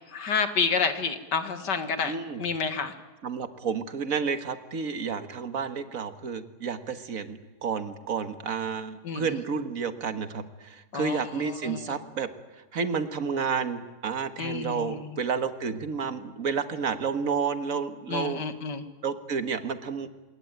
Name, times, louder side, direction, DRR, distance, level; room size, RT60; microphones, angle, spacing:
voice 1, 0.1-2.1 2.4-2.9 9.0-9.4 10.9-11.8 14.4-15.2 18.1-18.8, left 5 dB, 75° left, 8 dB, 2.4 m, -29 dB
voice 2, 2.0-2.4 3.2-12.3 12.7-18.4 19.0-20.1, right 6 dB, 55° right, 9 dB, 1.8 m, -31 dB
26.5 x 21.0 x 9.2 m, 1.2 s
omnidirectional pair, 1.8 m